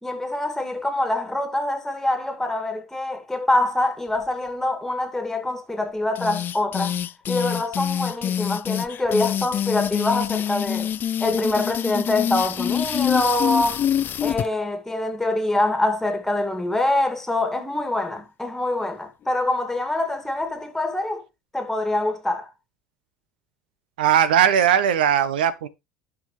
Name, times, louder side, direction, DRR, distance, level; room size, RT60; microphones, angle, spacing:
voice 1, 0.0-7.0 7.3-10.9 11.2-13.8 14.2-21.3 21.5-22.5, left 2 dB, 5° left, 2.3 m, -25 dB
sound 1, 6.1-14.5, left 9 dB, 45° left, 0.5 m, -25 dB
voice 2, 24.0-25.7, right 9 dB, 80° right, 0.9 m, -19 dB
10.5 x 6.2 x 3.2 m
hypercardioid pair, 70°, 5 cm